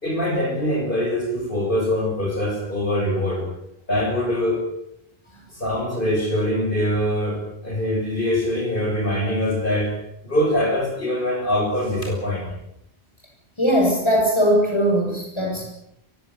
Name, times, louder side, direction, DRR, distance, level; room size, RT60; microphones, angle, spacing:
voice 1, 0.0-3.5 3.9-4.6 5.5-9.9 10.2-12.4, left 1 dB, 55° left, 0 dB, 7.0 m, -23 dB
voice 2, 13.6-15.6, equal, 25° left, 0 dB, 7.4 m, -19 dB
23.5 x 16.0 x 9.6 m, 0.78 s
omnidirectional pair, 1.1 m